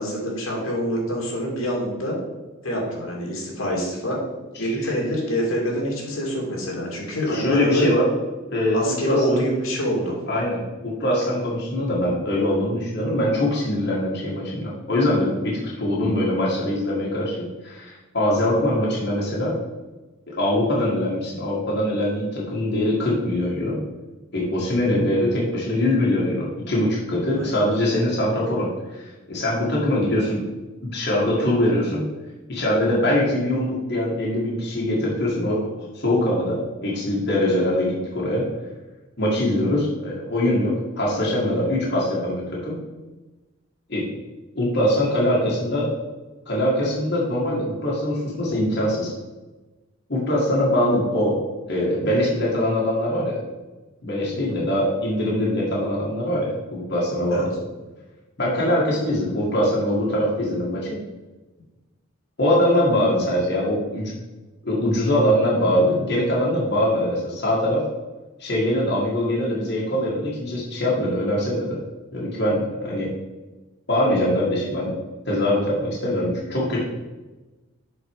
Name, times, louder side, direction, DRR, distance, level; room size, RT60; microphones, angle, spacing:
voice 1, 0.0-2.2 2.6-4.2 4.6-7.9 8.7-10.3 18.5-18.6 27.3-27.9 54.3-54.6 57.3-57.5, equal, 85° left, -2 dB, 2.3 m, -26 dB
voice 2, 4.6-4.9 7.3-8.0 8.5-9.2 10.3-17.4 17.6-19.5 20.3-23.8 24.3-30.4 30.9-32.0 32.5-38.5 39.2-42.8 43.9-44.1 44.6-45.9 46.5-49.1 50.1-51.4 51.7-53.4 54.0-57.5 58.4-61.0 62.4-64.1 64.6-67.8 68.4-71.8 72.1-73.1 73.9-74.9 75.3-76.8, left 1 dB, 55° left, -5 dB, 1.7 m, -22 dB
7.7 x 4.6 x 4.7 m, 1.2 s
head